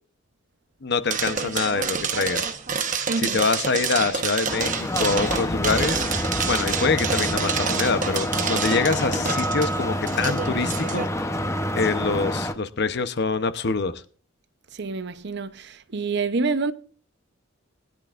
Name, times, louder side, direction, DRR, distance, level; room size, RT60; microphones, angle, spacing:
voice 1, 0.8-2.4 3.2-6.0 6.5-11.3 11.7-14.0, left 4 dB, 55° left, 0.9 m, -25 dB
sound 1, 1.1-11.1, right 6 dB, 40° right, 1.2 m, -28 dB
voice 2, 3.1-3.4 14.7-16.7, right 4 dB, 60° right, 0.8 m, -27 dB
sound 2, 4.5-12.5, left 1 dB, 15° left, 0.9 m, -27 dB
21.0 x 10.5 x 2.5 m
head